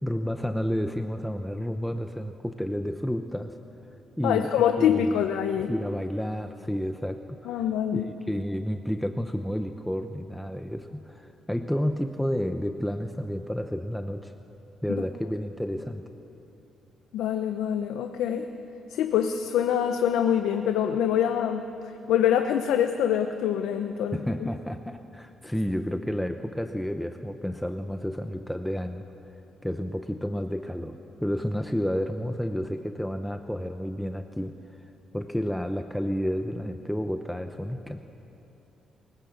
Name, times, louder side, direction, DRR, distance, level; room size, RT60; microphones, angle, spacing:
voice 1, 0.0-3.6 4.2-5.2 5.7-7.5 7.9-14.3 14.8-16.0 24.1-29.0 29.6-38.0, equal, 5° left, 7 dB, 0.9 m, -31 dB
voice 2, 4.2-5.7 7.4-8.1 17.1-18.5 18.9-21.7 22.1-24.2, left 9 dB, 90° left, 7 dB, 0.9 m, -25 dB
23.0 x 20.5 x 8.1 m, 2.8 s
cardioid pair, 105°, 0 cm